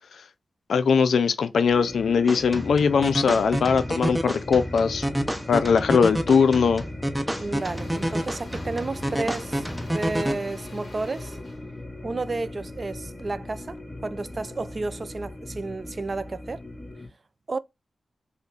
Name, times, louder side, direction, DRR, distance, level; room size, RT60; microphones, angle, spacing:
voice 1, 0.7-5.1 5.5-6.8, left 6 dB, 85° left, 0.3 m, -20 dB
sound 1, 1.7-17.1, left 1 dB, 20° left, 1.2 m, -39 dB
sound 2, 2.3-10.3, equal, 5° right, 0.8 m, -29 dB
Engine / Drill, 7.1-13.3, left 1 dB, 40° left, 1.3 m, -46 dB
voice 2, 7.4-11.4 12.0-13.8 14.0-16.6 17.5-17.6, right 3 dB, 45° right, 0.4 m, -32 dB
3.4 x 2.1 x 3.8 m
cardioid pair, 50°, 0 cm